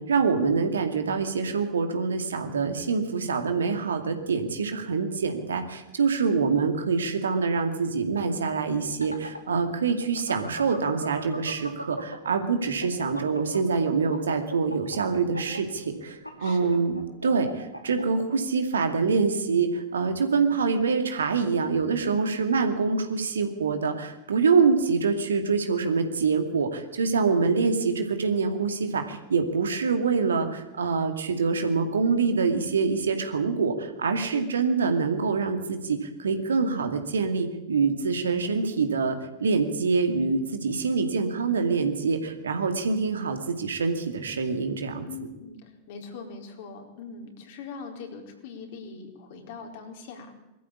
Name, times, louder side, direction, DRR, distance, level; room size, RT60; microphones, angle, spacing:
voice 1, 0.0-45.1, right 5 dB, 70° right, 6 dB, 2.3 m, -25 dB
sound 1, 8.7-12.3 12.7-18.0, equal, 90° left, 2.4 m, -37 dB
voice 2, 16.4-16.8 22.0-22.3 34.3-34.4 45.1-50.3, left 5 dB, 50° left, 2 dB, 4.4 m, -41 dB
21.5 x 14.0 x 8.6 m, 0.94 s
figure-of-eight pair, 90°, 0 cm